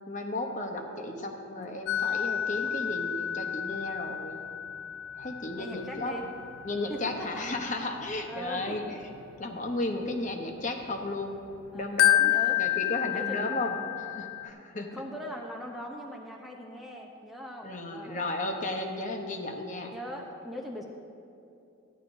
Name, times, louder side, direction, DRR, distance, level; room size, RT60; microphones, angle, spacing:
voice 1, 0.1-4.5 5.1-6.1 6.6-9.0 9.4-11.4 11.7-12.3 12.6-15.0 17.6-19.9, left 2 dB, 40° left, 3 dB, 0.8 m, -34 dB
sound 1, 1.9-11.3 11.7-14.5, left 12 dB, 85° left, 0.3 m, -30 dB
voice 2, 5.6-6.3 6.9-7.4 8.3-8.8 11.7-12.6 13.1-13.5 14.9-18.2 19.9-20.8, equal, ahead, -1 dB, 0.5 m, -40 dB
14.0 x 10.0 x 2.6 m, 2.6 s
head